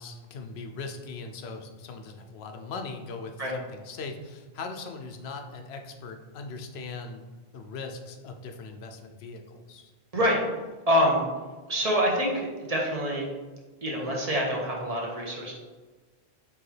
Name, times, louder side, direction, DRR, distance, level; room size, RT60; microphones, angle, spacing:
voice 1, 0.0-7.3 7.5-9.9, left 4 dB, 90° left, 5 dB, 0.8 m, -40 dB
voice 2, 10.9-11.3 11.7-13.3 13.8-15.5, equal, 40° right, -2 dB, 0.8 m, -26 dB
4.7 x 3.4 x 3.2 m, 1.3 s
omnidirectional pair, 1.0 m